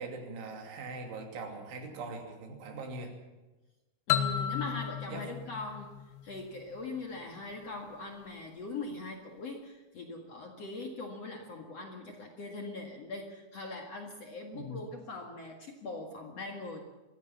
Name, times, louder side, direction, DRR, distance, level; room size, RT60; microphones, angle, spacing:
voice 1, 0.0-3.1 5.1-5.3 14.5-14.8, right 3 dB, 90° right, 3 dB, 5.2 m, -41 dB
sound 1, 4.1-6.8, left 9 dB, 70° left, 2.9 m, -33 dB
voice 2, 4.1-5.9 6.2-16.8, left 3 dB, 50° left, 2 dB, 2.2 m, -41 dB
23.5 x 16.0 x 7.2 m, 1.1 s
omnidirectional pair, 5.2 m